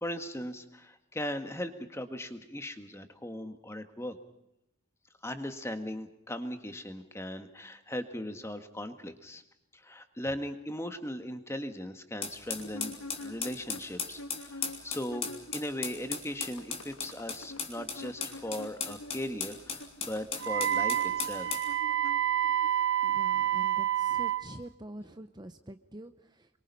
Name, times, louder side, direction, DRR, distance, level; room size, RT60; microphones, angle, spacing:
voice 1, 0.0-4.2 5.2-9.4 9.7-21.6, left 1 dB, 15° left, 8 dB, 1.7 m, -38 dB
sound 1, 12.2-21.7, left 5 dB, 30° left, 3.2 m, -37 dB
sound 2, 12.6-15.7 16.0-22.7, left 2 dB, 90° left, 1.4 m, -47 dB
Wind instrument woodwind instrument, 20.4-24.4, right 11 dB, 55° right, 1.1 m, -28 dB
voice 2, 23.0-26.5, right 1 dB, 20° right, 9 dB, 0.8 m, -46 dB
27.5 x 24.0 x 5.5 m, 0.79 s
head